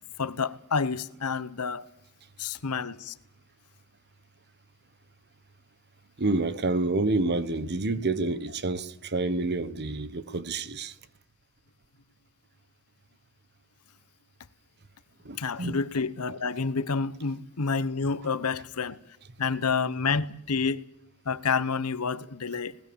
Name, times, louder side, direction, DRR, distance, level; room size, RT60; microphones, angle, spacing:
voice 1, 0.2-1.9 2.4-3.1 15.4-19.0 19.4-20.8 21.2-22.8, left 5 dB, 85° left, 1.0 m, -29 dB
voice 2, 6.2-10.9 15.2-15.8, right 2 dB, 50° right, 1.3 m, -28 dB
26.0 x 19.0 x 7.2 m
head